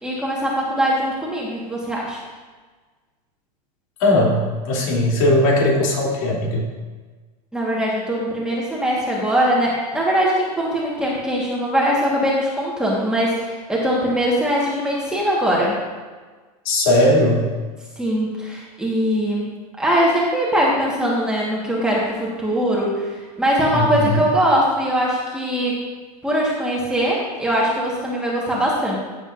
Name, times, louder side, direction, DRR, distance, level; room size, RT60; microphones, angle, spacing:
voice 1, 0.0-2.2 7.5-15.8 18.0-19.5 19.8-25.8 26.2-29.0, equal, 5° right, -5 dB, 1.5 m, -21 dB
voice 2, 4.0-6.7 16.6-17.5 23.7-24.2, left 1 dB, 60° left, -3 dB, 2.9 m, -18 dB
15.0 x 7.4 x 2.6 m, 1.4 s
supercardioid pair, 150°, 20 cm